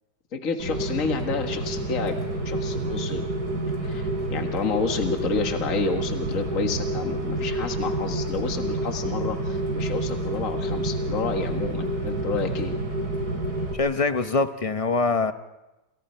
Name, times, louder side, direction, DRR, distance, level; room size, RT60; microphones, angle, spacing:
voice 1, 0.3-3.2 3.8-12.7, left 4 dB, 50° left, 4 dB, 2.0 m, -30 dB
Rain, 0.6-13.7, right 1 dB, 65° right, 4.3 m, -28 dB
voice 2, 13.7-15.3, left 3 dB, 30° left, 9 dB, 0.7 m, -23 dB
28.5 x 28.5 x 4.5 m, 1.0 s
omnidirectional pair, 1.8 m